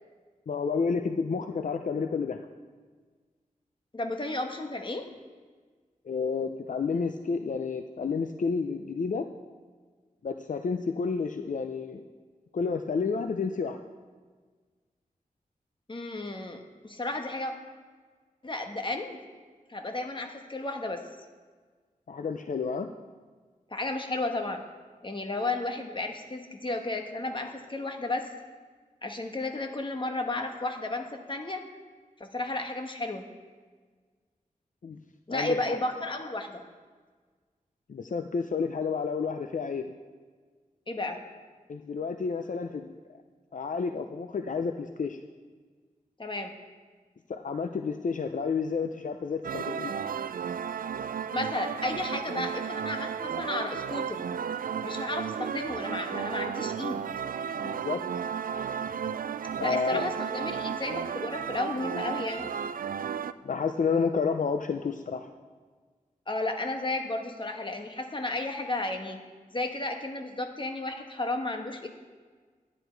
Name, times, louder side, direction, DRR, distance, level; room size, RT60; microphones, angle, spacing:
voice 1, 0.5-2.4 6.1-9.3 10.2-12.0 12.5-13.8 22.1-22.9 34.8-35.0 35.3-35.8 37.9-39.9 41.7-42.9 43.5-45.2 47.3-49.9 57.6-58.0 59.6-60.1 63.4-65.3, left 5 dB, 65° left, 6 dB, 0.6 m, -30 dB
voice 2, 3.9-5.1 15.9-17.5 18.4-19.2 19.7-21.1 23.7-24.7 25.0-28.3 29.0-31.7 32.2-33.3 35.3-36.6 40.9-41.3 46.2-46.6 51.3-54.2 54.8-57.0 59.6-62.5 66.3-69.2 69.5-71.9, left 2 dB, 35° left, 4 dB, 1.3 m, -33 dB
sound 1, 49.4-63.3, right 7 dB, 75° right, 0.4 m, -33 dB
12.0 x 10.0 x 4.6 m, 1.5 s
wide cardioid pair, 65°, 15 cm